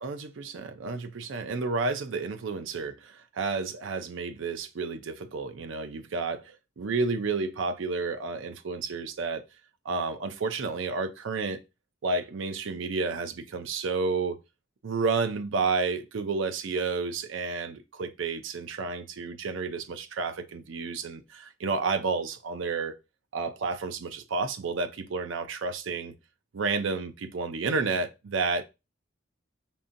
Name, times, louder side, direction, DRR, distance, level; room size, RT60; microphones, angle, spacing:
voice 1, 0.0-9.4 9.9-11.6 12.0-14.4 14.8-22.9 23.3-26.1 26.5-28.6, right 4 dB, 70° right, 0.5 m, -31 dB
5.3 x 2.5 x 2.5 m
head